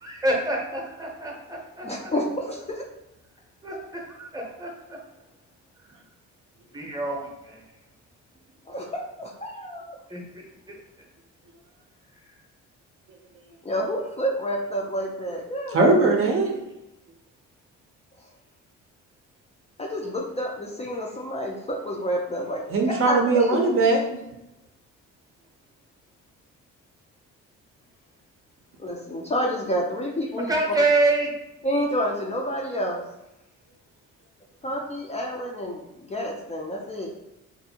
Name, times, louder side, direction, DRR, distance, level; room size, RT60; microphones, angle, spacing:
voice 1, 0.0-2.1 3.6-5.0 6.7-7.6 10.1-10.8 30.5-31.3, right 2 dB, 10° right, 0 dB, 0.7 m, -27 dB
voice 2, 1.8-2.8 8.7-10.0 13.6-15.9 19.8-23.6 28.8-30.5 31.6-33.0 34.6-37.1, equal, 20° left, -2 dB, 0.4 m, -29 dB
voice 3, 15.7-16.5 22.7-24.0, right 3 dB, 45° right, 1 dB, 0.5 m, -20 dB
2.6 x 2.6 x 2.7 m, 0.92 s
cardioid pair, 90°, 30 cm